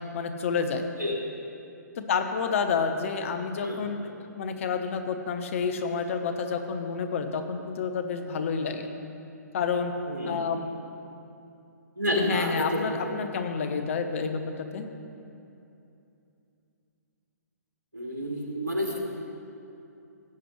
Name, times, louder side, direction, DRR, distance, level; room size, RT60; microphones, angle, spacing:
voice 1, 0.1-0.8 2.0-4.0 4.4-8.9 9.5-9.9 10.2-10.6 12.1-14.9, left 5 dB, 45° left, 7 dB, 0.9 m, -29 dB
voice 2, 10.1-10.4 12.0-13.1 17.9-19.0, equal, 90° right, -1 dB, 2.2 m, -29 dB
17.0 x 7.9 x 3.2 m, 2.7 s
figure-of-eight pair, 130°, 10 cm